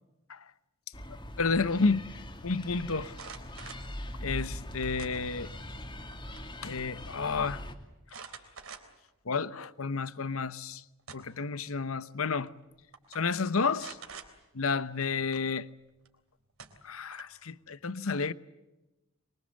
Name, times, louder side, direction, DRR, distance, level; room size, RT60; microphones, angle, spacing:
sound 1, 0.9-7.7, equal, 20° left, 2.6 m, -42 dB
voice 1, 1.4-2.0 2.4-3.1 4.2-5.5 6.6-7.6 9.3-10.8 11.1-12.5 13.1-14.0 14.5-15.7 16.8-18.3, left 4 dB, 70° left, 0.9 m, -30 dB
sound 2, 3.1-3.9 5.0-5.6 6.0-6.5 6.8-6.9 8.1-9.1 9.6-9.7 10.7-11.5 12.5-12.6 12.9-13.2 13.8-14.3 16.0-16.1 16.6-17.4, right 6 dB, 65° right, 3.5 m, -46 dB
25.0 x 23.5 x 7.8 m
head